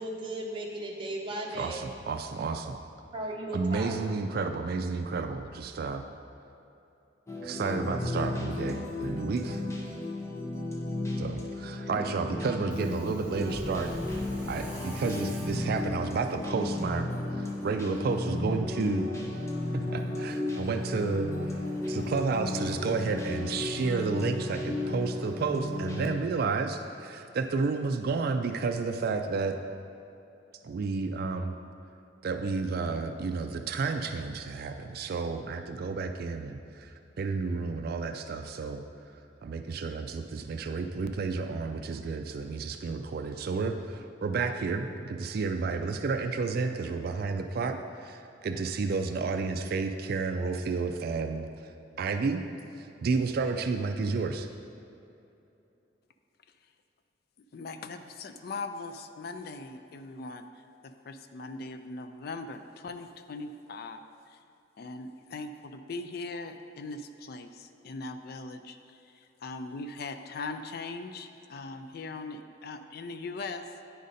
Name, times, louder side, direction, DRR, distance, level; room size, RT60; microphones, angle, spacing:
voice 1, 0.0-1.8 3.1-4.0, right 1 dB, 30° right, -1 dB, 0.9 m, -36 dB
voice 2, 1.5-2.8 3.5-6.1 7.4-9.6 11.2-13.9 14.5-19.1 19.9-21.6 21.9-29.6 30.6-31.5 32.2-38.8 39.4-51.7 52.0-52.4 52.7-54.5, right 4 dB, 55° right, 7 dB, 0.4 m, -31 dB
sound 1, 7.3-26.2, left 2 dB, 15° left, 0.8 m, -34 dB
Subway metro underground, 12.6-26.1, right 1 dB, 5° right, 1.2 m, -47 dB
voice 3, 57.5-64.4 64.8-73.6, left 3 dB, 55° left, 8 dB, 0.4 m, -40 dB
9.2 x 5.1 x 4.1 m, 2.8 s
head